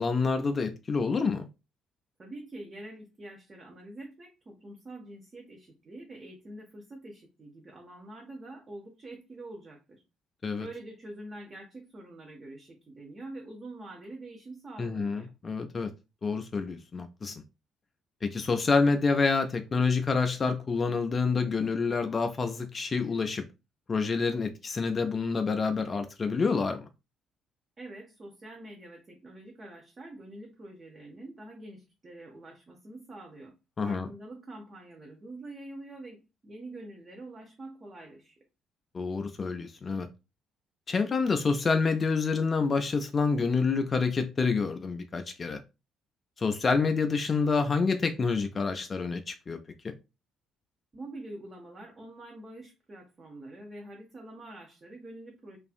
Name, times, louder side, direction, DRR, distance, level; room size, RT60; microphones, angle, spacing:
voice 1, 0.0-1.5 10.4-10.7 14.8-15.9 16.2-17.4 18.2-23.4 23.9-26.9 33.8-34.1 38.9-40.1 40.9-45.6 46.4-49.6 49.8-49.9, left 4 dB, 35° left, 0.3 m, -27 dB
voice 2, 2.2-10.0 10.6-15.3 27.8-33.5 33.8-38.4 50.9-55.6, right 2 dB, 35° right, 0.7 m, -45 dB
2.5 x 2.4 x 2.3 m
figure-of-eight pair, 45°, 0 cm